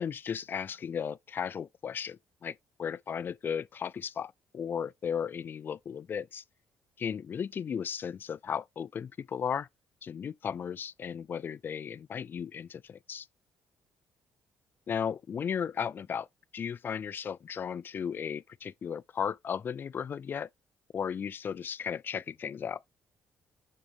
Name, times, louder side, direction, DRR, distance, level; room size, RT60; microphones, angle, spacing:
voice 1, 0.0-6.4 7.0-9.7 10.0-13.3 14.9-16.3 16.5-20.5 20.9-22.8, left 7 dB, 40° left, 0.3 m, -35 dB
7.4 x 3.8 x 3.5 m
cardioid pair, 100°, 5 cm